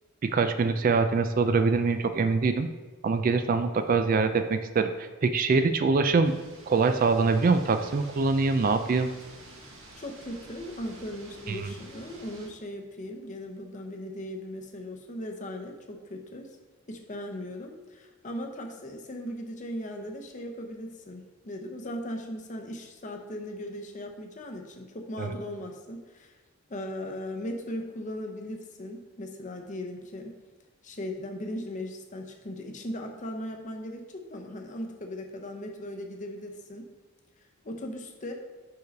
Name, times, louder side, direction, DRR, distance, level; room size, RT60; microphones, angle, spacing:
voice 1, 0.2-2.7 3.0-6.4 6.7-9.1 11.5-11.6 25.2-25.3, right 4 dB, 40° right, 9 dB, 0.3 m, -24 dB
sound 1, 6.2-12.5, right 2 dB, 65° right, 1.2 m, -49 dB
voice 2, 10.0-16.6 16.9-26.3 26.7-30.4 30.8-36.9 37.6-38.3, left 1 dB, 35° left, 3 dB, 0.7 m, -38 dB
4.8 x 4.7 x 5.2 m, 1.3 s
head